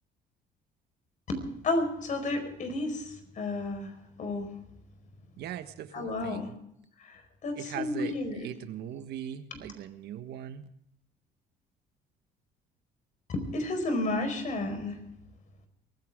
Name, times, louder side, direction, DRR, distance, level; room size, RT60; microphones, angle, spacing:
voice 1, 1.3-4.5 5.9-6.5 7.0-8.5 9.5-9.6 13.3-15.0, left 2 dB, 50° left, 7 dB, 4.8 m, -32 dB
voice 2, 5.4-6.5 7.6-8.1 8.4-10.6, right 10 dB, 75° right, 10 dB, 1.4 m, -39 dB
23.5 x 15.0 x 3.7 m, 0.73 s
cardioid pair, 110°, 17 cm